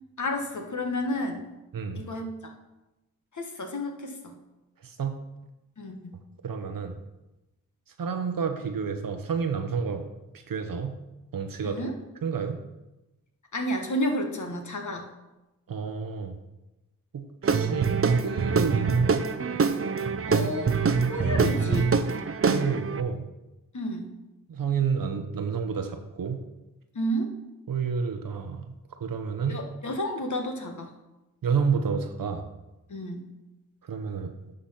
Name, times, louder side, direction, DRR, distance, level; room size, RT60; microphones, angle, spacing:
voice 1, 0.2-1.4 1.9-2.3 3.3-4.4 5.8-6.2 11.6-11.9 13.5-15.1 20.3-20.8 21.1-21.9 23.7-24.1 26.9-27.3 29.5-30.9 32.9-33.2, equal, 60° left, 3 dB, 1.5 m, -31 dB
voice 2, 1.7-2.0 4.8-5.2 6.4-6.9 8.0-11.0 11.3-11.9 12.2-12.6 15.7-16.3 17.1-19.2 22.5-23.3 24.5-26.4 27.7-28.7 29.0-29.7 31.4-32.5 33.8-34.3, right 6 dB, 75° right, 7 dB, 0.9 m, -30 dB
Guitar / Drum, 17.4-23.0, right 5 dB, 40° right, 0.7 m, -24 dB
10.5 x 3.9 x 5.8 m, 0.99 s
cardioid pair, 40°, 34 cm